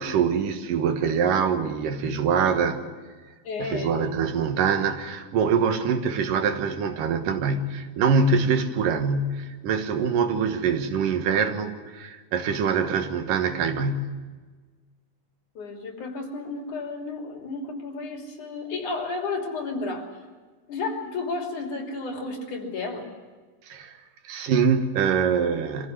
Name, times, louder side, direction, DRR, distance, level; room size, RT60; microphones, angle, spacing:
voice 1, 0.0-2.8 3.6-14.2 23.7-23.9 24.2-25.9, right 6 dB, 85° right, 7 dB, 3.0 m, -24 dB
voice 2, 3.5-4.1 15.6-20.1 20.7-23.1, left 3 dB, 65° left, 1 dB, 4.5 m, -32 dB
24.5 x 15.0 x 9.5 m, 1.4 s
omnidirectional pair, 3.8 m